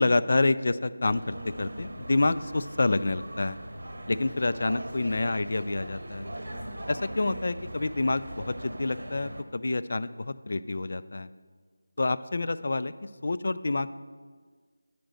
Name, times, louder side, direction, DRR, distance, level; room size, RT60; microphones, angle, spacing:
voice 1, 0.0-3.6 4.1-6.3 6.9-11.3 12.0-13.9, left 2 dB, 50° left, 14 dB, 0.3 m, -28 dB
sound 1, 1.1-9.4, right 1 dB, 80° right, 1.0 m, -40 dB
8.9 x 5.1 x 6.4 m, 1.6 s
figure-of-eight pair, 175°, 0 cm